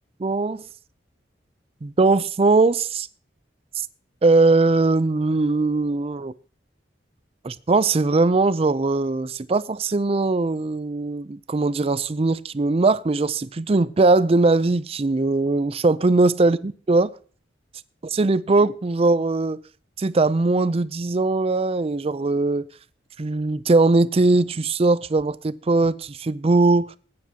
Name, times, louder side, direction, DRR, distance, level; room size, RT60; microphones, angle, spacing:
voice 1, 0.2-0.6 1.8-3.1 4.2-6.3 7.4-17.1 18.1-19.6 20.0-22.7 23.2-27.0, right 3 dB, 30° right, 0.4 m, -20 dB
19.5 x 9.6 x 2.8 m
head